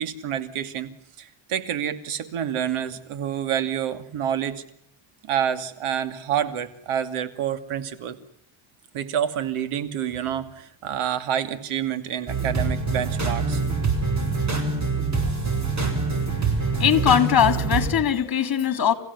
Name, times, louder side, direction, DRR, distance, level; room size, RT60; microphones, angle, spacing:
voice 1, 0.0-4.6 5.2-8.2 8.9-13.6 16.7-16.8, right 9 dB, 80° right, 12 dB, 2.6 m, -28 dB
sound 1, 12.3-17.9, right 4 dB, 35° right, 7.1 m, -25 dB
voice 2, 16.6-18.9, left 9 dB, 45° left, 12 dB, 3.3 m, -21 dB
28.5 x 16.0 x 9.6 m, 0.73 s
cardioid pair, 105°, 50 cm